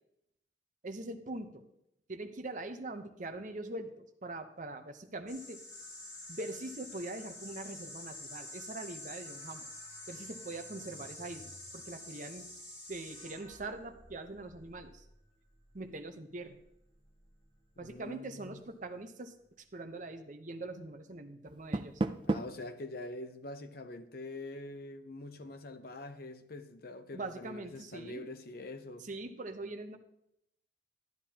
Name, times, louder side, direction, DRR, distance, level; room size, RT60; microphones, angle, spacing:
voice 1, 0.8-1.6 2.1-5.6 6.3-9.7 10.1-12.5 12.9-15.1 15.7-16.6 17.8-22.0 27.1-28.2 29.0-30.0, right 2 dB, 40° right, 0.8 m, -43 dB
sound 1, 5.3-15.8 16.5-17.9, left 1 dB, 30° left, 3.4 m, -48 dB
voice 2, 17.8-18.6 22.2-29.1, left 2 dB, 50° left, 0.7 m, -45 dB
Door, 21.5-22.7, right 2 dB, 25° right, 0.4 m, -34 dB
12.0 x 10.5 x 2.8 m
head